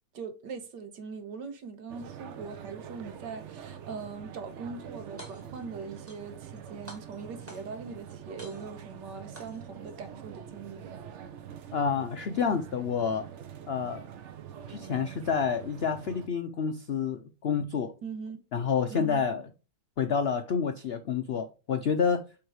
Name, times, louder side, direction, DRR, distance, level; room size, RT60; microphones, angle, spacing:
voice 1, 0.1-10.9 18.0-18.4 18.9-19.3, right 5 dB, 80° right, 1.6 m, -41 dB
sound 1, 1.9-16.3, right 8 dB, 60° right, 0.8 m, -45 dB
sound 2, 5.0-5.7 6.1-6.6 6.9-7.9 8.4-8.9 9.4-9.9, equal, 10° right, 1.8 m, -49 dB
voice 2, 11.7-13.3 13.7-14.0 14.7-17.9 18.5-19.4 20.0-22.2, left 6 dB, 80° left, 0.5 m, -28 dB
7.8 x 3.6 x 4.7 m
omnidirectional pair, 1.9 m